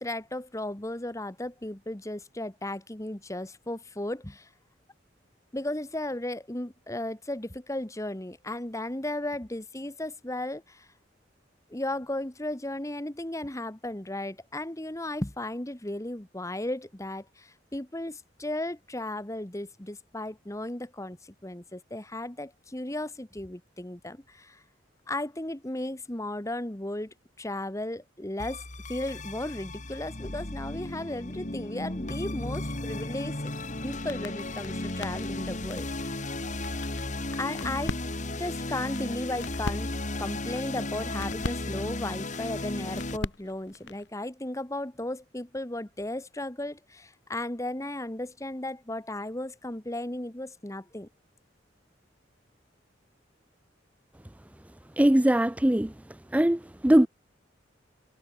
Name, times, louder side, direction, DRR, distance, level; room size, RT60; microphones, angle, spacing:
voice 1, 0.0-4.5 5.5-10.9 11.7-24.6 25.1-33.5 33.8-36.3 37.4-38.0 38.4-39.9 40.2-51.1, left 1 dB, 15° left, 1.3 m, -35 dB
sound 1, 28.4-43.2, left 2 dB, 40° left, 2.4 m, -35 dB
sound 2, 33.2-44.1, left 2 dB, 70° left, 1.5 m, -42 dB
voice 2, 55.0-55.9 56.3-57.1, right 1 dB, 10° right, 0.4 m, -21 dB
head